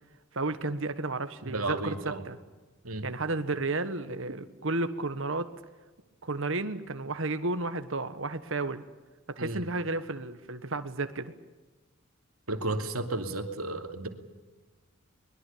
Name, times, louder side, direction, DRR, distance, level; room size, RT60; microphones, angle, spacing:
voice 1, 0.3-2.4 3.0-5.5 6.2-8.8 9.3-11.3, right 2 dB, 60° right, 9 dB, 1.5 m, -32 dB
voice 2, 1.4-2.2 2.8-3.1 9.4-9.6 12.5-14.1, right 2 dB, 80° right, 5 dB, 2.7 m, -33 dB
22.5 x 21.5 x 8.6 m, 1.2 s
head